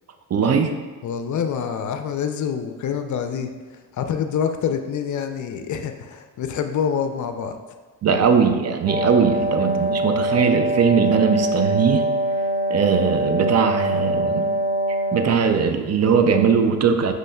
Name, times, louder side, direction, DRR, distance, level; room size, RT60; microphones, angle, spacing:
voice 1, 0.3-0.8 8.0-12.1 12.7-14.5 15.1-17.1, right 6 dB, 40° right, 7 dB, 0.5 m, -19 dB
voice 2, 1.0-3.5 4.0-7.5, left 7 dB, 45° left, 7 dB, 0.5 m, -26 dB
Wind instrument woodwind instrument, 8.9-15.6, right 1 dB, 15° right, 0.9 m, -23 dB
7.5 x 3.1 x 2.2 m, 1.4 s
supercardioid pair, 60°, 41 cm